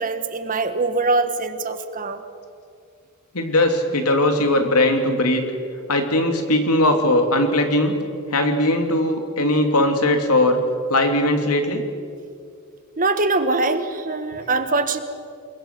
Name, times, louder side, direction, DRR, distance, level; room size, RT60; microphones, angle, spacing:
voice 1, 0.0-2.2 13.0-15.0, right 3 dB, 40° right, 9 dB, 1.4 m, -23 dB
voice 2, 3.3-5.4 5.9-7.9 8.3-10.6 10.9-11.8, left 1 dB, 85° left, 5 dB, 2.9 m, -19 dB
28.0 x 22.0 x 6.0 m, 2.3 s
head